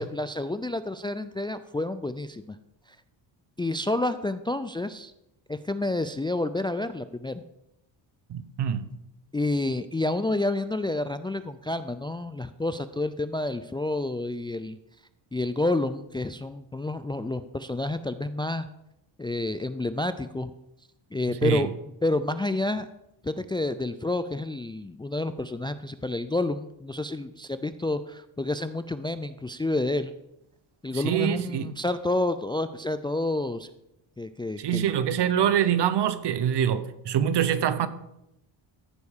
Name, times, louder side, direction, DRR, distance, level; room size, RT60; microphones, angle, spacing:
voice 1, 0.0-2.6 3.6-5.1 5.5-7.4 9.3-14.8 15.3-18.7 19.2-20.5 21.1-21.7 22.0-22.9 23.2-30.1 30.8-33.7 34.2-34.8, left 2 dB, 10° left, 0.4 m, -29 dB
voice 2, 8.3-8.9 21.3-21.7 30.9-31.7 34.6-37.9, right 9 dB, 60° right, 1.0 m, -25 dB
14.0 x 4.7 x 7.2 m
cardioid pair, 95°, 47 cm